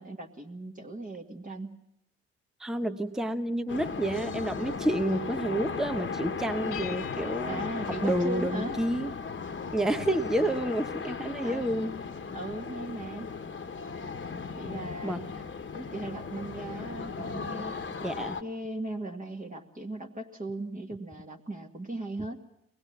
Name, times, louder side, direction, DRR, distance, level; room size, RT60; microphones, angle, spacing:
voice 1, 0.0-1.8 7.4-8.8 11.4-11.7 12.3-13.3 14.6-15.3 15.7-17.8 18.4-22.4, right 2 dB, 20° right, 1 dB, 2.1 m, -38 dB
voice 2, 2.6-7.6 8.0-9.1 9.7-12.0 15.0-15.2 17.2-17.3 18.0-18.4, right 1 dB, ahead, 9 dB, 1.0 m, -29 dB
sound 1, 3.7-18.4, left 5 dB, 35° left, 1.5 m, -36 dB
sound 2, 6.7-8.9, left 10 dB, 60° left, 1.4 m, -47 dB
23.5 x 20.0 x 7.2 m, 0.80 s
hypercardioid pair, 50°, 35 cm